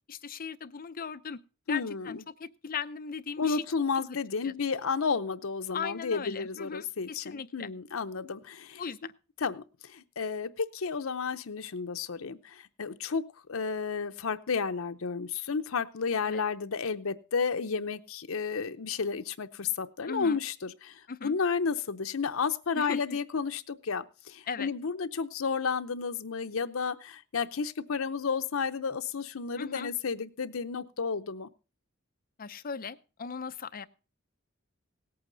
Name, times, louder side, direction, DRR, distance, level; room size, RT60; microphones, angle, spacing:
voice 1, 0.1-1.4 1.7-3.6 4.1-4.2 4.4-4.5 5.7-7.7 8.8-9.1 16.3-16.4 20.0-20.4 21.1-21.4 22.7-23.2 24.5-24.7 29.6-29.9 32.4-33.9, left 6 dB, 45° left, 11 dB, 0.6 m, -38 dB
voice 2, 1.7-2.2 3.4-8.8 9.4-13.2 13.5-31.5, left 5 dB, 80° left, 9 dB, 0.7 m, -32 dB
18.0 x 8.7 x 3.9 m, 0.32 s
head